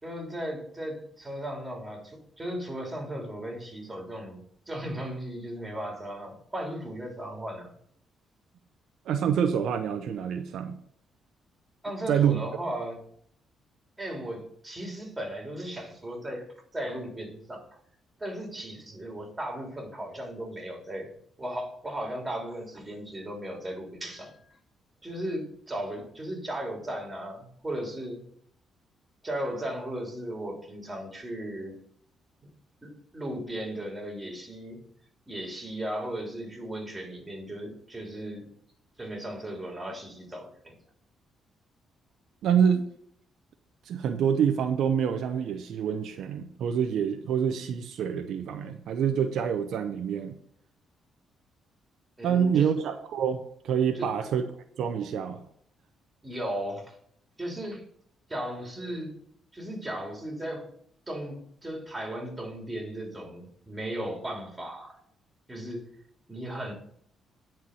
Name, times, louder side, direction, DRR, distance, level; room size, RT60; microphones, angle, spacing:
voice 1, 0.0-7.7 11.8-13.0 14.0-16.4 16.7-17.7 18.2-21.1 21.4-24.6 25.0-28.2 29.2-31.7 32.8-34.8 35.3-38.5 39.0-40.7 52.2-52.7 53.9-54.1 56.2-57.0 57.4-57.8 58.3-59.1 59.5-60.7 61.1-65.0 65.5-65.8 66.3-66.7, right 1 dB, 15° right, 1 dB, 3.4 m, -36 dB
voice 2, 9.1-10.8 12.1-12.4 42.4-42.9 43.9-50.3 52.2-54.5 54.8-55.4, right 8 dB, 75° right, 7 dB, 0.7 m, -26 dB
9.7 x 4.6 x 7.8 m, 0.66 s
cardioid pair, 90°, 0 cm